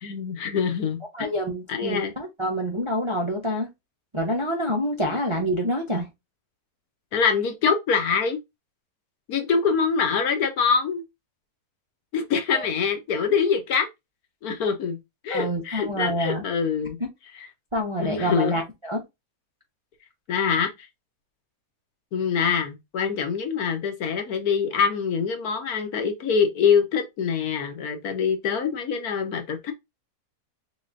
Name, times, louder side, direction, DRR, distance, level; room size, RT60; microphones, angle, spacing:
voice 1, 0.0-1.3 1.7-2.1 5.1-5.2 7.1-8.4 9.3-11.0 12.1-13.9 14.4-15.0 15.2-17.0 17.3-17.5 18.0-18.5 20.3-20.7 22.1-29.7, left 6 dB, 65° left, 1.3 m, -24 dB
voice 2, 1.1-3.7 4.1-6.1 12.5-12.6 15.3-16.4 17.7-19.0, equal, 30° right, 0.6 m, -27 dB
4.1 x 3.6 x 2.5 m
omnidirectional pair, 1.8 m